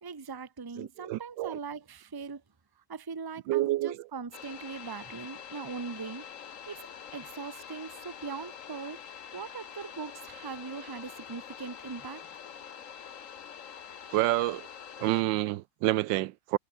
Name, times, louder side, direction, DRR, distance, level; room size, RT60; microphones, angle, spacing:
voice 1, 0.0-2.4 2.9-6.2 6.7-9.0 9.3-12.2, right 5 dB, 20° right, 0.7 m, -40 dB
voice 2, 0.8-1.6 3.5-4.0 14.1-14.7 15.0-16.6, right 16 dB, 90° right, 1.3 m, -28 dB
sound 1, 4.3-15.2, left 8 dB, 50° left, 1.3 m, -45 dB
omnidirectional pair, 2.0 m